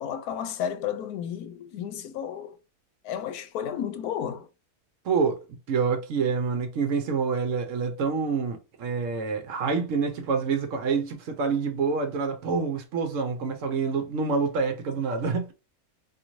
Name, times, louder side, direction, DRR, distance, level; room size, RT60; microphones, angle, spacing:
voice 1, 0.0-2.6 3.0-4.5, left 9 dB, 85° left, 1.1 m, -32 dB
voice 2, 5.0-5.4 5.7-15.5, right 5 dB, 65° right, 0.9 m, -27 dB
2.7 x 2.6 x 2.9 m
omnidirectional pair, 1.6 m